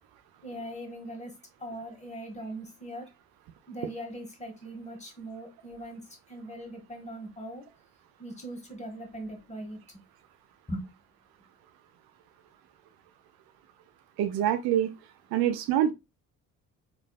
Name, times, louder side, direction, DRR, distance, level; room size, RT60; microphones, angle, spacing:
voice 1, 0.4-3.1 3.7-7.7 8.2-9.8 10.7-10.9, right 1 dB, 15° left, 1.1 m, -40 dB
voice 2, 14.2-14.9 15.3-15.9, right 10 dB, 60° right, 0.5 m, -25 dB
3.2 x 2.5 x 2.3 m
hypercardioid pair, 50°, 42 cm